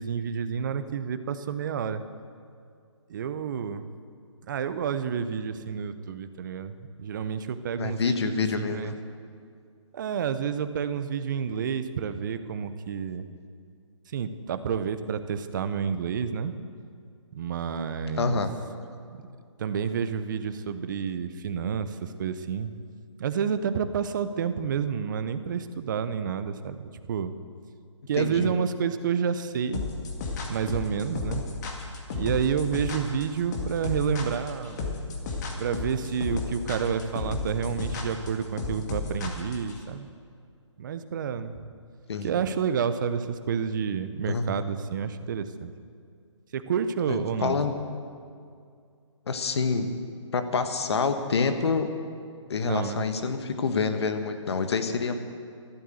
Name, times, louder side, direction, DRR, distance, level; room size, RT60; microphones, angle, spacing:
voice 1, 0.0-2.0 3.1-3.9 4.5-8.9 9.9-13.3 14.1-16.5 17.3-18.4 19.1-19.2 19.6-22.7 23.2-27.3 28.1-29.8 30.5-31.4 32.1-34.8 35.6-40.1 40.8-41.6 42.2-45.7 46.5-47.6 52.7-53.0, right 7 dB, 40° right, 11 dB, 0.8 m, -29 dB
voice 2, 7.8-8.9 18.2-18.5 28.2-28.5 42.1-42.3 44.3-44.6 47.1-47.7 49.3-49.9 50.3-51.9 52.5-55.2, left 4 dB, 55° left, 7 dB, 1.5 m, -27 dB
sound 1, 29.7-39.8, left 4 dB, 35° left, 2.2 m, -32 dB
13.0 x 12.0 x 7.9 m, 2.3 s
hypercardioid pair, 150°, 16 cm